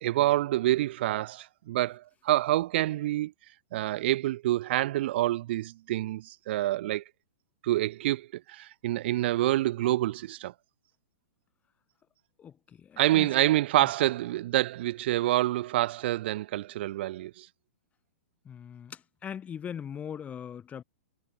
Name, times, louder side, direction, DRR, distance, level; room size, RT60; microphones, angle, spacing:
voice 1, 0.0-3.3 3.7-7.0 7.6-10.5 13.0-17.5, right 15 dB, 55° right, 0.5 m, -27 dB
voice 2, 12.4-13.3 13.8-13.9 18.4-20.8, left 8 dB, 20° left, 3.3 m, -40 dB
hypercardioid pair, 120°, 7 cm